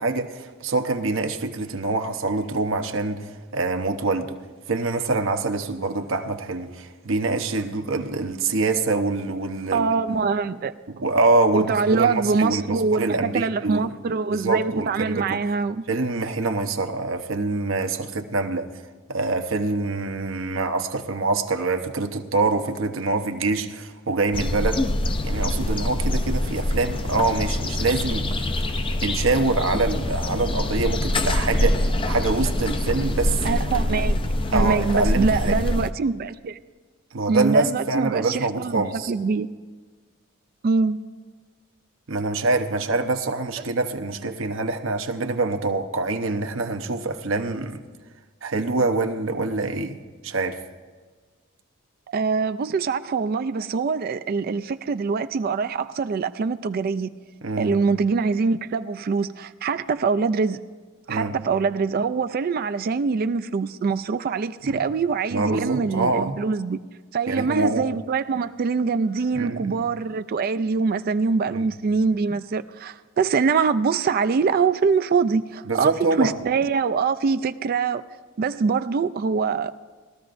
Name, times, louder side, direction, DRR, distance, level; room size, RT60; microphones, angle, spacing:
voice 1, 0.0-4.4 4.7-9.9 10.9-13.9 14.3-15.4 15.9-18.7 19.1-24.8 25.2-28.5 29.0-33.4 34.5-35.6 37.1-39.1 42.1-47.8 48.4-50.6 57.4-57.8 61.1-61.3 64.6-64.8 65.3-66.4 67.3-67.9 69.3-69.9 71.5-71.7 75.7-76.5, right 3 dB, 70° right, 0.9 m, -25 dB
voice 2, 9.7-10.7 11.5-15.8 33.4-34.2 34.5-36.6 37.3-39.5 40.6-41.0 52.1-57.1 57.6-60.6 61.1-66.8 67.1-78.0 78.4-79.7, right 5 dB, 45° right, 0.3 m, -24 dB
sound 1, 24.3-35.9, left 1 dB, 25° left, 0.5 m, -24 dB
20.5 x 13.5 x 2.6 m
head